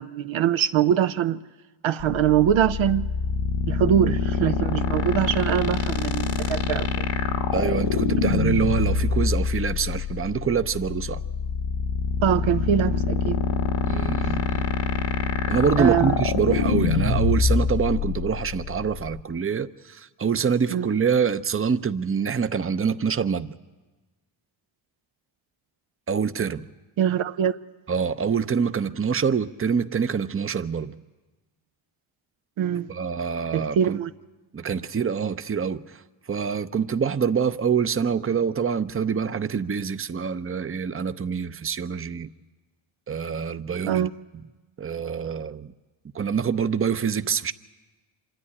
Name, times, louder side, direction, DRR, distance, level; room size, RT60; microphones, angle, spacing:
voice 1, 0.0-1.4 1.8-3.1 3.7-6.9 12.2-13.4 15.8-16.1 20.7-20.9 27.0-27.5 32.6-32.9 33.5-34.1 43.9-44.1, right 9 dB, 70° right, 0.7 m, -23 dB
sound 1, 2.0-19.2, left 6 dB, 70° left, 1.4 m, -25 dB
voice 2, 7.5-11.2 13.8-14.7 15.5-23.5 26.1-26.7 27.9-30.9 32.9-34.0 34.5-36.0 36.3-42.3 43.1-44.1 44.8-45.7 46.1-47.5, right 6 dB, 25° right, 0.7 m, -25 dB
25.5 x 11.5 x 9.9 m
cardioid pair, 55°, 50 cm